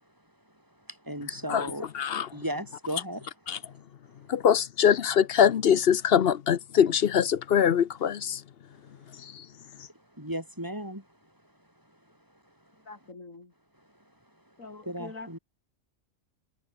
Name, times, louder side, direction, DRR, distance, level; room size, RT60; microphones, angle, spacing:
voice 1, 0.9-3.3 9.9-11.1 14.8-15.4, equal, 15° right, 5.2 m, -36 dB
voice 2, 1.9-2.3 3.5-3.6 4.3-8.4 9.1-9.5, left 8 dB, 55° left, 0.8 m, -23 dB
voice 3, 12.9-13.5 14.6-15.4, left 3 dB, 75° left, 4.0 m, -44 dB
omnidirectional pair, 1.4 m